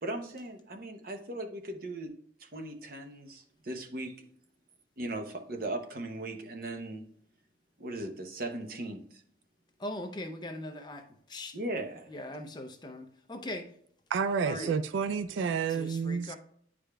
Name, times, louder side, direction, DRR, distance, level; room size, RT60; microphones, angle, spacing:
voice 1, 0.0-2.1 2.4-4.2 5.0-7.0 7.8-9.0 11.5-12.1 14.6-14.7, right 1 dB, 50° right, 0.7 m, -38 dB
voice 2, 9.8-11.6 12.1-13.7 14.4-14.7 15.7-16.4, left 1 dB, 20° left, 0.5 m, -40 dB
voice 3, 14.1-16.4, right 6 dB, 75° right, 0.3 m, -30 dB
9.9 x 4.9 x 2.3 m
head